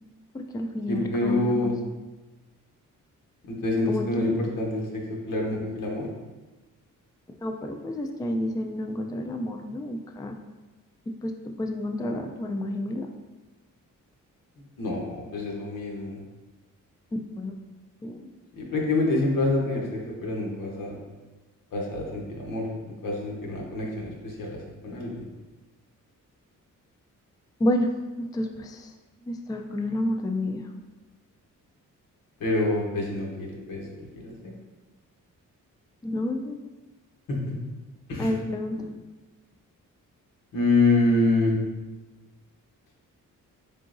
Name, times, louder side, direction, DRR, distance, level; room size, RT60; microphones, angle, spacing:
voice 1, 0.3-1.8 3.9-4.4 7.4-10.3 11.1-11.3 11.6-13.1 17.4-17.5 18.0-18.3 27.6-27.9 28.2-28.9 29.2-30.7 36.0-36.6 38.2-38.8, left 1 dB, 10° left, 4 dB, 0.3 m, -30 dB
voice 2, 0.9-1.7 3.6-4.8 5.3-6.0 14.8-16.2 18.6-20.9 21.7-22.6 23.0-24.1 24.4-24.6 24.8-25.2 32.4-33.8 34.2-34.3 38.1-38.3 40.5-41.5, left 2 dB, 85° left, -2 dB, 1.0 m, -26 dB
3.8 x 3.6 x 2.5 m, 1.2 s
cardioid pair, 80°, 33 cm